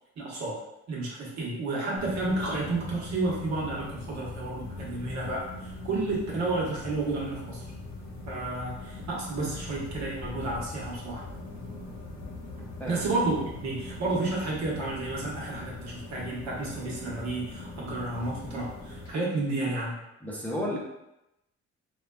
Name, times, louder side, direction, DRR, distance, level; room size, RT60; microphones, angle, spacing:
voice 1, 0.2-0.6 0.9-7.6 8.3-11.3 12.9-20.0, right 2 dB, 65° right, -5 dB, 1.1 m, -31 dB
sound 1, 2.0-19.1, left 2 dB, 60° left, 0.9 m, -41 dB
voice 2, 20.2-20.8, equal, 5° left, -4 dB, 0.6 m, -32 dB
3.6 x 2.3 x 2.3 m, 0.89 s
cardioid pair, 90°, 30 cm